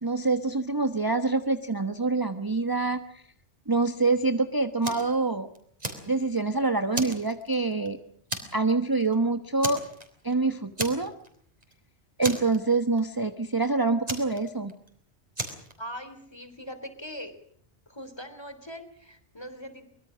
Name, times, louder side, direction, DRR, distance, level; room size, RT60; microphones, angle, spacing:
voice 1, 0.0-3.2 3.7-5.5 6.1-8.0 8.5-9.8 10.2-11.1 12.2-14.7, right 3 dB, 20° right, 8 dB, 1.1 m, -26 dB
Fire, 4.8-5.1 5.5-6.5 6.9-7.9 8.3-8.7 9.0-9.1 9.6-10.3 10.8-11.3 11.6-11.7 12.2-13.0 14.1-14.9 15.3-15.7, right 1 dB, 35° right, 4.5 m, -34 dB
voice 2, 15.8-17.3 17.9-19.9, equal, 20° left, 10 dB, 3.4 m, -41 dB
24.5 x 22.5 x 6.3 m, 0.64 s
omnidirectional pair, 1.1 m